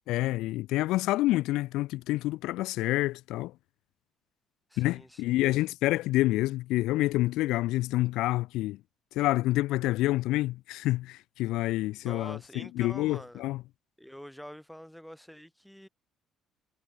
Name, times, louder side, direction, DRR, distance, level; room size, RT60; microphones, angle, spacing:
voice 1, 0.1-3.5 4.8-8.8 9.1-13.6, left 17 dB, 80° left, 1.0 m, -28 dB
voice 2, 4.7-5.2 12.0-13.4 14.0-15.9, equal, ahead, 2.4 m, -46 dB
cardioid pair, 155°, 0 cm